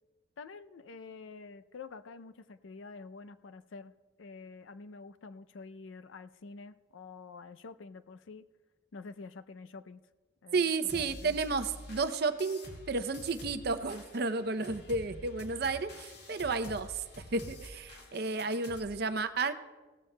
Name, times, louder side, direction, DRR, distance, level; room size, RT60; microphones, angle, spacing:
voice 1, 0.4-3.9 4.2-8.5 8.9-10.0 10.4-11.4, left 4 dB, 85° left, 12 dB, 0.5 m, -48 dB
voice 2, 10.5-12.6 12.9-19.5, right 4 dB, 55° right, 10 dB, 0.6 m, -32 dB
sound 1, 10.9-18.8, left 1 dB, 55° left, 1.9 m, -48 dB
17.0 x 13.5 x 2.2 m, 1.3 s
head